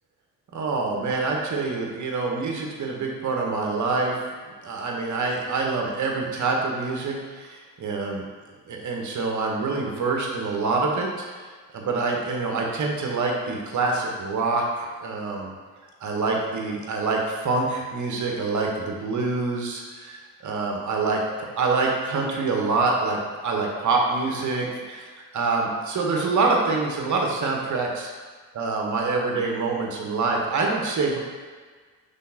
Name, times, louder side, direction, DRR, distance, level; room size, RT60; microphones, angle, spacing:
voice 1, 0.5-4.1 4.6-8.3 8.7-11.1 11.7-15.5 16.0-25.1 25.3-28.1 28.5-31.2, right 3 dB, 40° right, 0 dB, 1.0 m, -26 dB
5.6 x 3.4 x 2.8 m, 1.5 s
hypercardioid pair, 45°, 46 cm